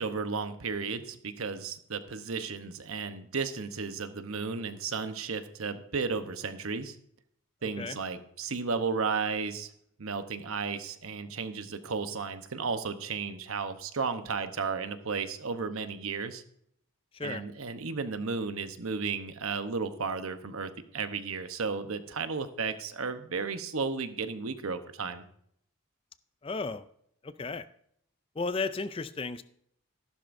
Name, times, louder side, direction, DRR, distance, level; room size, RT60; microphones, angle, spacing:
voice 1, 0.0-7.0 7.6-9.7 10.0-16.4 17.2-25.2, right 5 dB, 80° right, 9 dB, 0.9 m, -34 dB
voice 2, 26.4-26.8 27.2-27.7 28.4-29.4, left 3 dB, 25° left, 13 dB, 0.4 m, -34 dB
13.5 x 12.0 x 2.6 m, 0.69 s
head